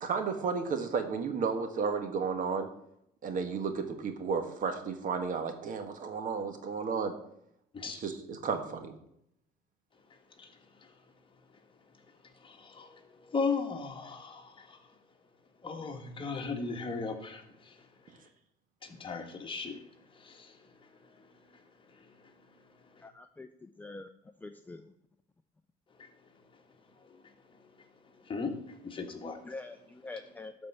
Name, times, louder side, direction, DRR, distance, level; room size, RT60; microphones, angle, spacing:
voice 1, 0.0-2.7 3.2-7.1 8.0-8.9, right 5 dB, 50° right, 1.6 m, -33 dB
voice 2, 9.9-15.3 15.6-18.3 18.8-23.1 25.9-29.5, left 4 dB, 30° left, 1.6 m, -40 dB
voice 3, 23.0-24.1 24.4-24.9 29.4-30.7, left 3 dB, 10° left, 0.5 m, -45 dB
12.0 x 4.4 x 7.1 m
cardioid pair, 110°, 17 cm